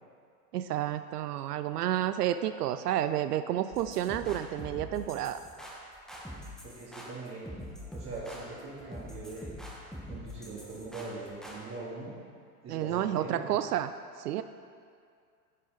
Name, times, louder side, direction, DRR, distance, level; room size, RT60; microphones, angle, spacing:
voice 1, 0.5-5.4 12.7-13.9 14.2-14.4, right 11 dB, 80° right, 11 dB, 0.5 m, -30 dB
sound 1, 3.7-11.6, equal, ahead, 1.6 m, -44 dB
voice 2, 6.6-7.5 7.9-9.6 10.1-12.1 12.6-13.6, right 3 dB, 30° right, -8 dB, 2.4 m, -41 dB
10.5 x 6.8 x 5.0 m, 2.2 s
hypercardioid pair, 100°, 46 cm